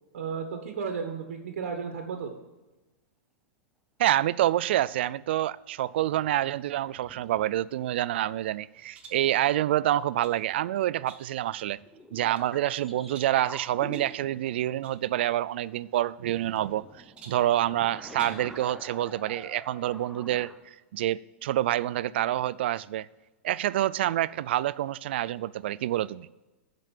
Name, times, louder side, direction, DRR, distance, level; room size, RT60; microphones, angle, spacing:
voice 1, 0.1-2.3, right 6 dB, 80° right, 1.5 m, -34 dB
voice 2, 4.0-11.8 12.1-16.8 17.3-23.1 23.4-26.3, right 13 dB, 55° right, 0.3 m, -27 dB
sound 1, 5.6-6.3 6.8-8.0 8.9-9.9 11.0-15.3 16.4-20.6, equal, ahead, 0.6 m, -47 dB
sound 2, 8.9-9.3 9.9-10.4 11.1-11.5 12.0-12.5 13.1-13.4 13.9-14.2 14.8-15.0 15.3-15.4 16.3-16.8 17.2-17.5 18.1-18.5, right 5 dB, 15° right, 1.2 m, -49 dB
12.0 x 5.2 x 7.4 m
supercardioid pair, 170°, 7 cm